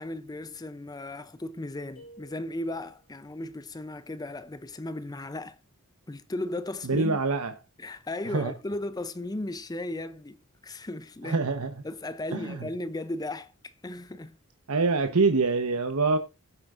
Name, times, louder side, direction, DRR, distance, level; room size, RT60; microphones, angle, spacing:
voice 1, 0.0-5.6 6.1-7.2 7.8-10.4 10.6-11.4 11.8-14.4, left 2 dB, 15° left, 0.5 m, -36 dB
sound 1, 2.0-3.1, right 1 dB, 65° left, 6.9 m, -53 dB
voice 2, 6.8-7.5 8.3-8.5 11.2-11.7 12.3-12.7 14.7-16.2, right 3 dB, 90° right, 1.0 m, -25 dB
17.0 x 7.9 x 2.5 m
head